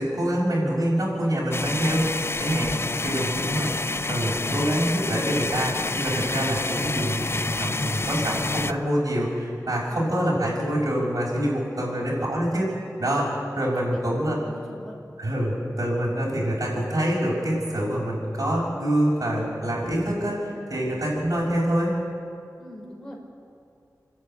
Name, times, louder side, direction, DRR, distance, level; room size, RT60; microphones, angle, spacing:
voice 1, 0.0-2.8 3.0-3.7 4.1-14.4 15.2-22.0, equal, 60° right, -5 dB, 6.7 m, -26 dB
sound 1, 1.5-8.7, left 3 dB, 40° left, 0.6 m, -28 dB
voice 2, 3.2-3.6 9.9-10.1 11.7-12.1 13.5-13.6 14.0-15.0 22.6-23.2, left 1 dB, 10° left, -3 dB, 4.5 m, -44 dB
27.0 x 10.5 x 9.3 m, 2.4 s
wide cardioid pair, 50°, 7 cm